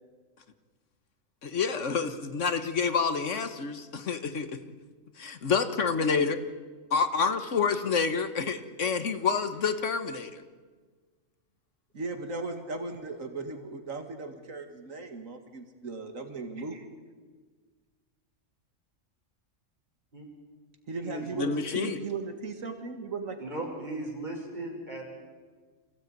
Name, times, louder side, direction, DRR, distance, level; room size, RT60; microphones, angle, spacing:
voice 1, 1.4-4.6 5.2-6.4 6.9-10.4 21.4-22.0, left 5 dB, 70° left, 10 dB, 1.5 m, -28 dB
voice 2, 11.9-16.9 20.9-23.4, right 3 dB, 80° right, 6 dB, 2.2 m, -37 dB
voice 3, 21.0-21.5 23.4-25.0, right 1 dB, 35° right, -1 dB, 6.0 m, -37 dB
25.5 x 16.0 x 9.2 m, 1.5 s
omnidirectional pair, 1.3 m